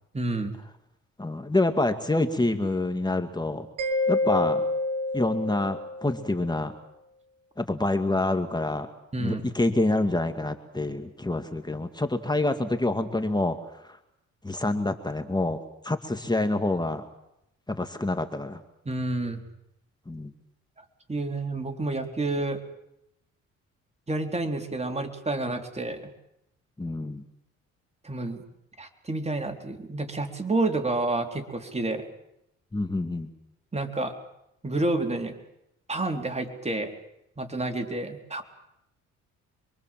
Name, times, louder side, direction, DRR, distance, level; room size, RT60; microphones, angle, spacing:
voice 1, 0.1-0.5 9.1-9.5 18.9-19.4 21.1-22.6 24.1-26.0 28.0-28.4 28.8-32.0 33.7-34.1 34.6-35.3 35.9-36.9 37.4-38.4, right 2 dB, 20° right, 4 dB, 3.8 m, -29 dB
voice 2, 1.2-3.7 4.1-4.6 5.1-6.7 7.6-8.9 9.2-13.6 14.4-15.6 15.8-17.0 17.7-18.6 20.1-20.3 26.8-27.2 32.7-33.3, left 2 dB, 15° left, 7 dB, 2.1 m, -27 dB
Mallet percussion, 3.8-6.3, left 2 dB, 80° right, 3.3 m, -28 dB
26.5 x 23.5 x 7.6 m, 0.82 s
cardioid pair, 90°, 30 cm